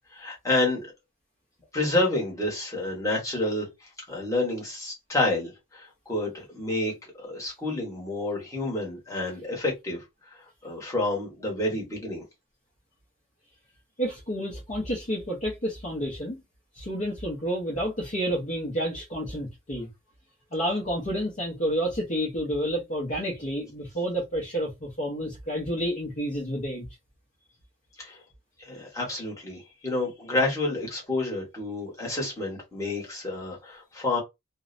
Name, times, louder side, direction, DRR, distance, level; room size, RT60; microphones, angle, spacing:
voice 1, 0.1-0.9 1.7-10.0 10.3-12.2 28.0-28.2 28.6-34.2, left 2 dB, 15° left, 1.2 m, -29 dB
voice 2, 14.0-16.4 16.7-19.9 20.5-26.9, equal, 35° left, 0.7 m, -30 dB
2.6 x 2.1 x 2.5 m
head